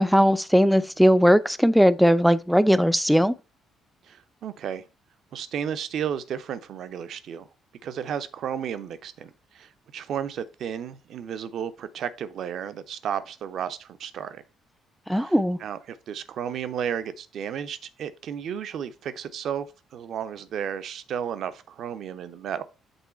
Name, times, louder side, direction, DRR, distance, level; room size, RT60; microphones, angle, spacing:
voice 1, 0.0-3.3 15.1-15.6, equal, ahead, 0.5 m, -19 dB
voice 2, 4.1-4.8 5.3-7.5 7.8-14.4 15.1-15.3 15.6-22.6, right 8 dB, 55° right, 0.6 m, -33 dB
8.1 x 3.7 x 4.2 m
figure-of-eight pair, 45°, 0 cm